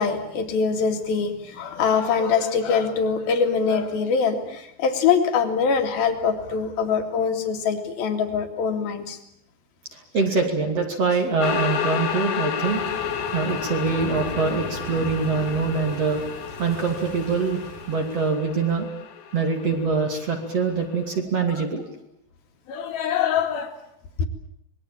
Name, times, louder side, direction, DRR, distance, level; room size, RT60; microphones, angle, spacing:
voice 1, 0.0-9.2 22.7-23.7 24.2-24.3, left 6 dB, 65° left, 7 dB, 4.1 m, -23 dB
voice 2, 9.9-12.8 13.3-16.2 16.6-17.6 17.9-18.9 19.3-21.8, right 4 dB, 40° right, 3 dB, 3.4 m, -24 dB
sound 1, 11.4-20.9, left 7 dB, 85° left, 4.0 m, -31 dB
Thunder / Rain, 12.6-18.4, right 2 dB, 65° right, 9.7 m, -39 dB
25.5 x 21.0 x 8.9 m, 0.77 s
omnidirectional pair, 4.7 m